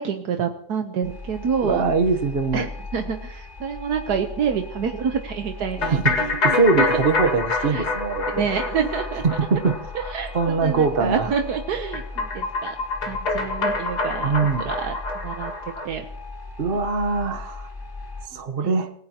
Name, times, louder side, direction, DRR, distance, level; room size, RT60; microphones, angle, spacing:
voice 1, 0.0-1.8 2.5-7.0 7.7-7.8 8.3-9.2 9.9-10.3 10.6-12.8 13.1-14.3 14.6-15.0 15.2-15.5 15.8-16.0 18.6-18.7, right 7 dB, 80° right, 5 dB, 1.5 m, -27 dB
sound 1, 1.0-18.3, left 3 dB, 15° left, 2.5 m, -38 dB
voice 2, 1.6-2.7 5.8-8.5 9.2-9.8 10.3-11.3 14.2-14.7 16.6-17.7 18.3-18.9, right 4 dB, 40° right, 5 dB, 1.2 m, -22 dB
sound 2, 5.8-15.9, left 3 dB, 85° left, 2.7 m, -27 dB
27.5 x 16.0 x 2.9 m, 0.67 s
omnidirectional pair, 1.7 m